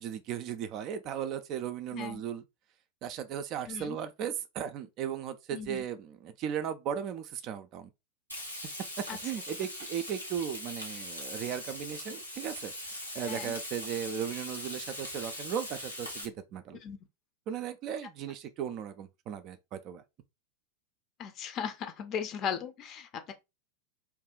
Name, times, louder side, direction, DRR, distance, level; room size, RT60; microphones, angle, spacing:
voice 1, 0.0-2.4 3.0-7.9 9.0-16.8 17.5-20.0, right 9 dB, 35° right, 0.4 m, -36 dB
voice 2, 3.7-4.0 5.5-5.8 9.1-9.2 13.3-13.5 16.8-17.0 21.2-23.3, left 7 dB, 35° left, 0.6 m, -37 dB
Frying (food), 8.3-16.2, left 1 dB, 90° left, 1.0 m, -41 dB
2.7 x 2.3 x 3.6 m
figure-of-eight pair, 90°, 0 cm